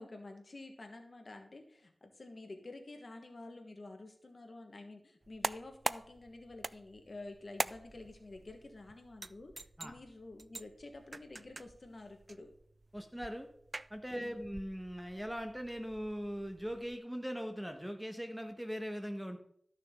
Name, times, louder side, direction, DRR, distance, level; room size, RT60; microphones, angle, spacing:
voice 1, 0.0-12.5 14.2-14.5, left 2 dB, 55° left, 4 dB, 1.4 m, -50 dB
sound 1, 5.2-17.0, right 2 dB, 45° right, 0.3 m, -45 dB
voice 2, 12.9-13.5 13.9-19.4, equal, 5° right, 5 dB, 1.3 m, -40 dB
13.0 x 6.3 x 3.8 m, 0.65 s
wide cardioid pair, 65°, 0 cm